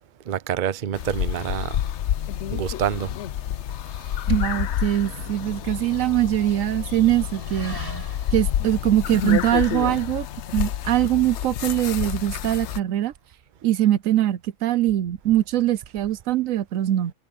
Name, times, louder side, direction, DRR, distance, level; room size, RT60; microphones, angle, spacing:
voice 1, 0.3-1.8 2.5-3.1, right 9 dB, 45° right, 0.7 m, -27 dB
sound 1, 0.9-12.8, left 11 dB, 65° left, 0.9 m, -29 dB
sound 2, 4.3-10.1, left 1 dB, 80° left, 8.8 m, -48 dB
voice 2, 4.3-8.0 8.3-10.3 10.5-13.1 13.6-17.1, right 13 dB, 75° right, 1.0 m, -22 dB
Motorcycle / Accelerating revving vroom, 4.9-13.5, equal, 15° right, 6.2 m, -48 dB
omnidirectional pair, 1.4 m